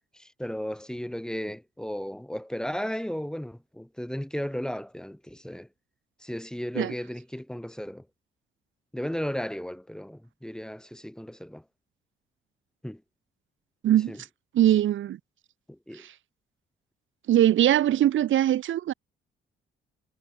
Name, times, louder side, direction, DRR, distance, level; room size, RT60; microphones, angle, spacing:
voice 1, 0.1-5.7 6.2-8.0 8.9-11.6 12.8-13.0 14.1-14.2 15.7-16.0, equal, 5° left, 3.8 m, -35 dB
voice 2, 14.5-15.2 15.9-16.1 17.3-18.9, right 12 dB, 75° right, 6.6 m, -21 dB
cardioid pair, 90°, 20 cm